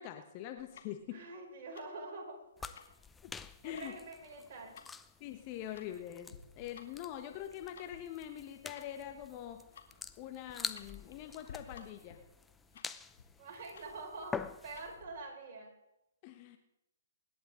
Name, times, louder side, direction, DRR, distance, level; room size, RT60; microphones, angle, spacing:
voice 1, 0.0-1.2 3.2-3.3 3.6-3.9 5.2-9.6 10.2-12.2 12.7-12.9 16.2-16.6, left 11 dB, 35° left, 6 dB, 1.2 m, -44 dB
Tick-tock, 0.6-15.2, left 6 dB, 60° left, 2.2 m, -58 dB
voice 2, 1.1-2.8 3.6-4.7 13.4-15.7, right 3 dB, 40° right, -1 dB, 5.5 m, -46 dB
sound 1, 2.6-15.0, left 5 dB, 10° left, 0.6 m, -47 dB
25.0 x 11.0 x 3.8 m, 0.88 s
figure-of-eight pair, 130°, 0 cm